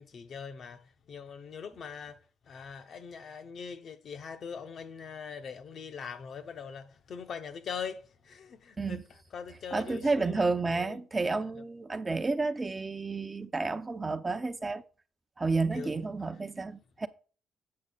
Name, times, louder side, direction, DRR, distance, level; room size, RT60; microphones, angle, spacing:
voice 1, 0.0-2.2 2.5-9.0 9.3-11.0 15.7-16.0, left 6 dB, 60° left, 1.0 m, -42 dB
voice 2, 9.7-14.8 15.4-17.1, right 3 dB, 25° right, 0.7 m, -31 dB
8.7 x 6.4 x 4.0 m
cardioid pair, 90°, 0 cm